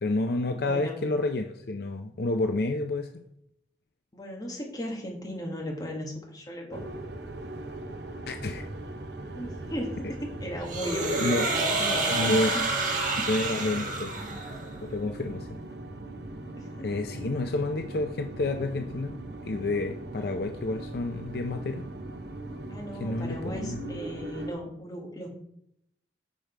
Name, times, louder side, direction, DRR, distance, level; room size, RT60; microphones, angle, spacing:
voice 1, 0.0-3.2 8.3-8.6 11.2-11.5 12.1-12.5 13.3-14.2 14.8-15.6 16.8-19.2 19.5-21.8 23.0-24.0, left 2 dB, 60° left, 5 dB, 0.5 m, -29 dB
voice 2, 0.5-1.0 4.1-6.8 9.3-12.7 16.6-17.2 20.1-20.4 22.7-25.3, equal, 20° left, -1 dB, 1.7 m, -37 dB
sound 1, 6.7-24.5, right 2 dB, 65° right, 0.8 m, -40 dB
sound 2, 10.7-14.7, right 3 dB, 45° right, 1.4 m, -28 dB
7.6 x 5.0 x 4.5 m, 0.74 s
head